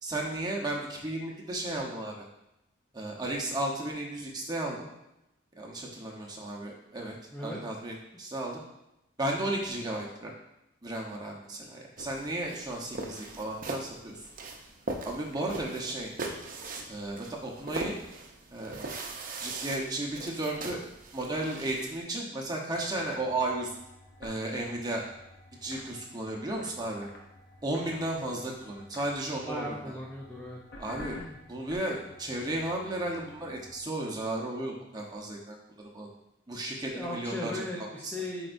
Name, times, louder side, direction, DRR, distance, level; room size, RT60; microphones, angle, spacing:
voice 1, 0.0-2.2 2.9-4.9 5.5-8.6 9.2-10.3 10.8-14.2 15.0-16.1 16.9-17.9 18.5-19.0 19.4-20.8 21.1-23.7 24.2-25.1 25.6-27.1 27.6-29.9 30.8-31.2 31.5-36.1 36.5-38.2, right 1 dB, 20° right, -1 dB, 1.0 m, -34 dB
sound 1, 12.0-22.0, right 3 dB, 45° right, 0.7 m, -40 dB
sound 2, 22.9-33.8, left 1 dB, 50° left, 1.0 m, -51 dB
voice 2, 29.5-30.6 31.1-31.4 36.9-38.5, left 1 dB, 10° left, -4 dB, 0.6 m, -37 dB
8.3 x 4.6 x 2.6 m, 0.88 s
head